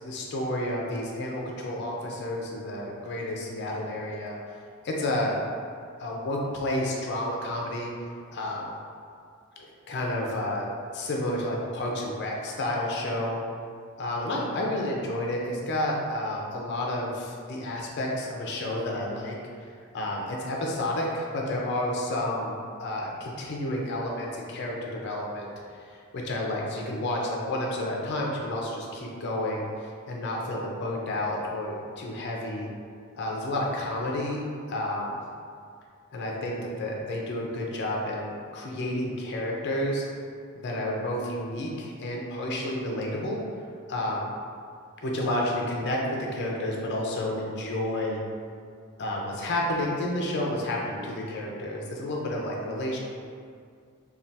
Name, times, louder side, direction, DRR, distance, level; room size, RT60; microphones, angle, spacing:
voice 1, 0.0-4.4 4.8-5.4 6.0-7.9 8.3-8.7 9.6-10.7 10.9-13.4 14.0-19.4 19.9-25.5 26.1-29.7 30.1-32.7 33.1-34.4 34.7-35.2 36.1-40.1 40.5-43.4 43.9-44.3 45.0-48.2 49.0-53.0, left 1 dB, 50° left, -2 dB, 0.4 m, -30 dB
3.2 x 2.3 x 2.7 m, 2.2 s
head